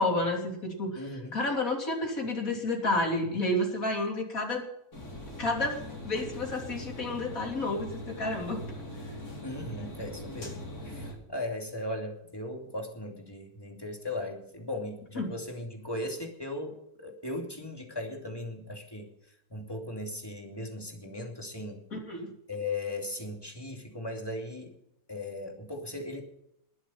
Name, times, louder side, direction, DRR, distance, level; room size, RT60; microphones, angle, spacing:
voice 1, 0.0-4.7 5.4-8.8 15.2-15.3 21.9-22.3, left 2 dB, 65° left, 1 dB, 3.6 m, -30 dB
voice 2, 1.0-1.4 9.4-19.1 19.5-21.8 22.5-24.7 25.1-26.2, left 1 dB, 15° left, 2 dB, 2.7 m, -37 dB
sound 1, 4.9-11.1, left 1 dB, 85° left, 4.9 m, -41 dB
21.0 x 7.3 x 5.8 m, 0.80 s
omnidirectional pair, 1.6 m